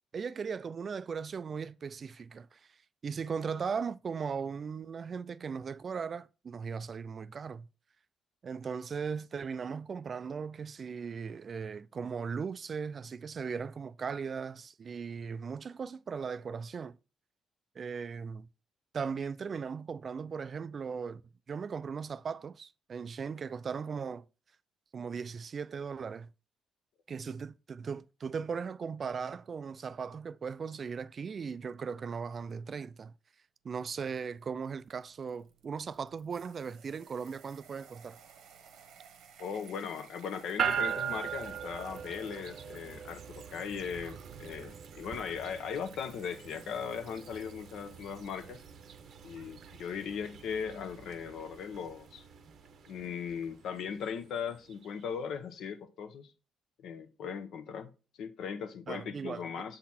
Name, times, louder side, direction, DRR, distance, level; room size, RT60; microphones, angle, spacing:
voice 1, 0.1-2.8 3.0-7.7 8.4-17.0 17.8-18.5 18.9-21.2 21.5-24.2 24.9-26.3 27.1-33.1 33.6-38.2 58.9-59.5, right 6 dB, 45° right, 0.3 m, -38 dB
sound 1, 34.1-52.1, right 7 dB, 85° right, 1.1 m, -59 dB
voice 2, 39.4-48.6 49.2-52.2 52.9-56.3 56.8-57.9 58.2-59.8, left 7 dB, 75° left, 0.9 m, -38 dB
sound 2, 40.6-54.9, right 8 dB, 65° right, 0.8 m, -41 dB
7.4 x 4.0 x 4.2 m
cardioid pair, 90°, 0 cm